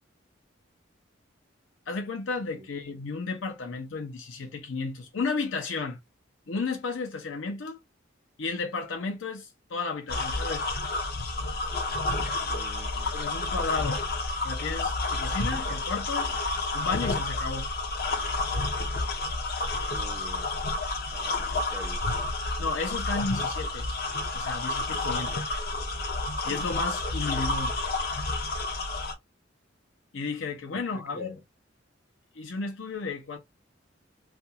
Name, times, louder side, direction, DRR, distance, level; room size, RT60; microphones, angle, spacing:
voice 1, 1.9-6.0 6.5-7.8 8.4-10.7 13.1-14.0 14.4-16.3 16.7-17.7 21.1-21.2 22.6-23.9 24.3-25.5 26.4-27.7 30.1-31.4 32.3-33.4, left 4 dB, 90° left, 0.7 m, -33 dB
sound 1, 10.1-29.1, left 2 dB, 55° left, 0.6 m, -30 dB
voice 2, 12.5-13.2 19.9-20.5 21.1-22.2 30.7-31.4, right 1 dB, 15° right, 0.3 m, -47 dB
2.5 x 2.3 x 2.8 m
head